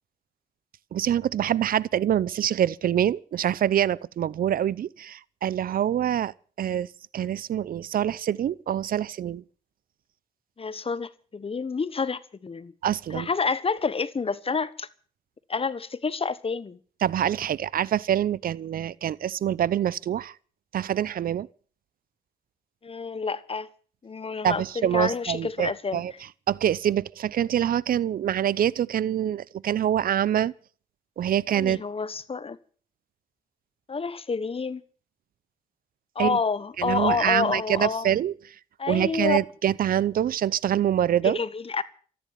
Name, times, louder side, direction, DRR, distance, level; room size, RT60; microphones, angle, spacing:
voice 1, 0.9-6.9 7.1-9.4 12.8-13.3 17.0-20.3 20.7-21.5 24.4-26.1 26.5-30.5 31.2-31.8 36.2-36.4 36.8-38.3 38.9-41.4, right 10 dB, 70° right, 0.7 m, -25 dB
voice 2, 10.6-12.7 13.1-14.9 15.5-16.8 22.8-23.7 24.0-26.0 31.5-32.6 33.9-34.8 36.1-38.1 38.8-39.4 41.2-41.8, left 5 dB, 35° left, 1.2 m, -28 dB
14.0 x 10.5 x 9.3 m
cardioid pair, 75°, 16 cm